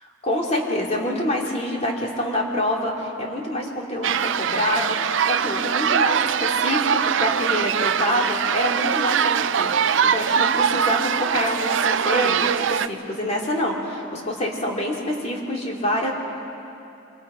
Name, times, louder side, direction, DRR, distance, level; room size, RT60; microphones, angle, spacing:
voice 1, 0.0-16.1, left 1 dB, 35° left, -1 dB, 2.6 m, -26 dB
sound 1, 4.0-12.9, right 7 dB, 75° right, 0.5 m, -22 dB
26.0 x 24.0 x 5.0 m, 2.7 s
head